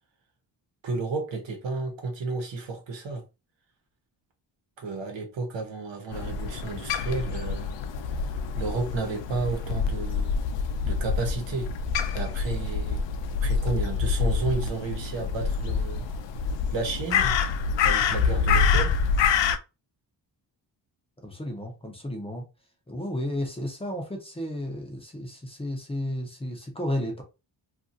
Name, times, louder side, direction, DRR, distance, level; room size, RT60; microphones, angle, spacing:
voice 1, 0.8-3.2 4.8-7.7 8.5-10.4 10.8-11.7 12.1-13.0 13.4-16.1 16.7-17.3 17.8-19.0, right 4 dB, 85° right, 1.1 m, -32 dB
Crow, 6.1-19.6, left 5 dB, 85° left, 0.5 m, -26 dB
voice 2, 21.2-22.4 22.9-27.2, left 1 dB, 15° left, 0.5 m, -33 dB
2.8 x 2.5 x 2.5 m
wide cardioid pair, 170°, 43 cm